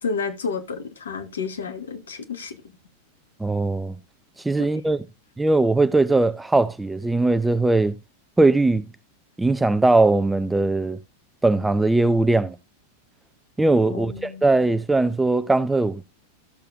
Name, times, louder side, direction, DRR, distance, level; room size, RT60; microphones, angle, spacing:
voice 1, 0.0-2.6 4.6-4.7 13.8-14.4, left 5 dB, 65° left, 1.3 m, -31 dB
voice 2, 3.4-4.0 4.4-5.0 5.4-7.9 8.4-8.9 9.4-11.0 11.4-12.6 13.6-16.0, right 2 dB, 5° right, 0.5 m, -20 dB
14.5 x 6.7 x 2.4 m
figure-of-eight pair, 90°, 0 cm